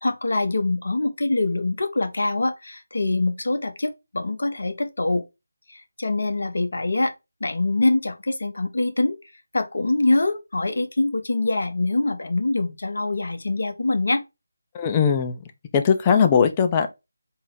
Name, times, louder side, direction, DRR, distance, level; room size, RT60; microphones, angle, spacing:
voice 1, 0.0-5.2 5.7-7.1 7.4-9.2 9.5-14.2, left 2 dB, 65° left, 0.7 m, -24 dB
voice 2, 14.7-15.4 15.7-16.9, left 6 dB, 20° left, 0.4 m, -19 dB
3.8 x 2.0 x 3.7 m
figure-of-eight pair, 160°, 0 cm